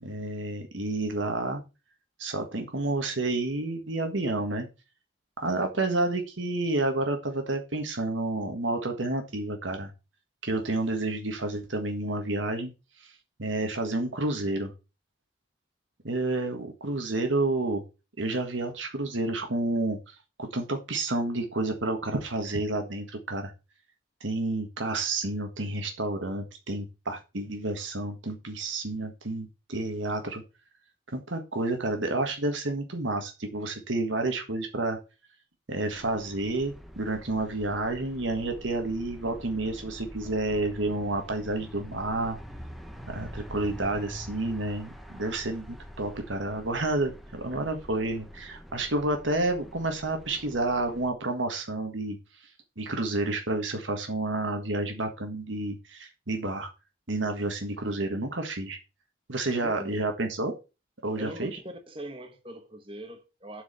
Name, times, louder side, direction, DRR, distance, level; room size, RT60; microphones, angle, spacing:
voice 1, 0.0-1.6 2.2-4.7 5.4-9.9 10.4-12.7 13.0-13.1 13.4-14.7 16.0-17.8 18.2-20.0 20.4-23.5 24.2-30.4 31.1-35.0 35.7-42.4 43.1-52.2 52.8-56.7 57.1-58.8 59.3-60.5 61.0-61.6, right 2 dB, 90° right, 1.6 m, -30 dB
sound 1, 35.9-51.1, equal, ahead, 0.9 m, -45 dB
voice 2, 59.5-60.0 61.2-63.6, right 1 dB, 30° right, 1.3 m, -41 dB
8.1 x 4.8 x 6.8 m
head